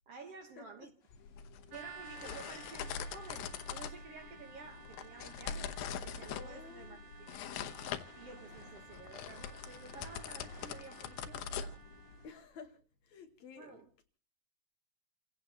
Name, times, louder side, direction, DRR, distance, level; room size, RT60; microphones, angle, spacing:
voice 1, 0.1-0.9 1.7-7.7 8.1-11.8 13.6-13.9, right 4 dB, 60° right, 1.7 m, -52 dB
sound 1, 1.0-12.4, left 4 dB, 40° left, 2.1 m, -62 dB
sound 2, 1.1-12.3, left 7 dB, 85° left, 2.7 m, -43 dB
sound 3, 1.7-12.3, right 5 dB, 85° right, 0.9 m, -55 dB
voice 2, 6.4-7.0 12.2-12.8 13.0-14.0, left 6 dB, 65° left, 2.1 m, -52 dB
30.0 x 17.0 x 2.9 m
omnidirectional pair, 4.0 m